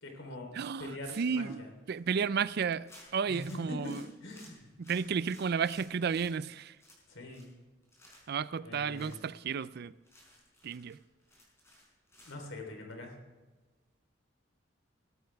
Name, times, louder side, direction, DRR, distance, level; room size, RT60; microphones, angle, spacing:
voice 1, 0.0-0.5 0.8-1.7 3.3-3.9 4.2-4.7 7.1-7.5 8.6-9.2 12.2-13.1, left 2 dB, 80° left, 3 dB, 3.6 m, -43 dB
voice 2, 0.5-1.6 1.9-4.0 4.8-6.8 8.3-9.9 10.6-11.0, right 6 dB, 55° right, 17 dB, 0.4 m, -33 dB
sound 1, 1.0-1.5 1.9-2.0 2.3-2.4 2.9-6.3 6.8-7.6 7.8-8.4 8.9-9.2 9.7-9.8 10.0-12.4, left 1 dB, 15° left, 5.2 m, -57 dB
20.0 x 12.5 x 3.5 m, 1.3 s
head